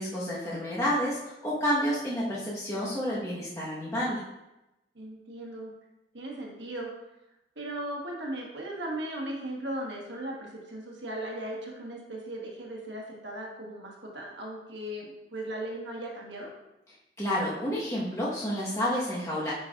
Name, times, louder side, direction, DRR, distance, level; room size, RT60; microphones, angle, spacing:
voice 1, 0.0-4.2 17.2-19.5, equal, 20° left, -7 dB, 1.3 m, -30 dB
voice 2, 4.9-5.7 6.1-6.9 7.6-16.5, right 1 dB, 85° right, -1 dB, 1.3 m, -37 dB
9.4 x 4.8 x 2.5 m, 0.93 s
head